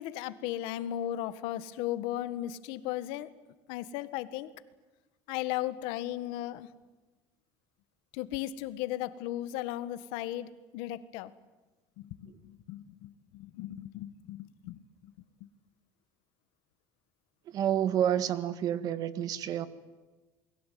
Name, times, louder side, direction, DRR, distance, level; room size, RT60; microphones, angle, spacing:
voice 1, 0.0-3.3 3.7-4.5 5.3-6.7 8.1-11.3 12.0-15.1, left 13 dB, 80° left, 1.6 m, -36 dB
voice 2, 17.5-19.7, right 10 dB, 50° right, 1.8 m, -29 dB
29.0 x 22.0 x 9.4 m
cardioid pair, 150°, 8 cm